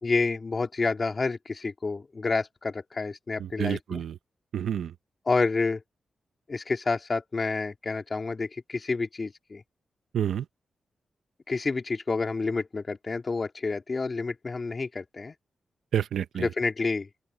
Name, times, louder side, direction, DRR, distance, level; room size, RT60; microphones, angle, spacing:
voice 1, 0.0-4.0 5.3-5.8 6.5-9.6 11.5-15.3 16.4-17.1, left 3 dB, 40° left, 3.1 m, -29 dB
voice 2, 3.4-4.1 4.5-4.9 10.1-10.4 15.9-16.5, right 9 dB, 85° right, 0.7 m, -29 dB
open air
cardioid pair, 65°, 0 cm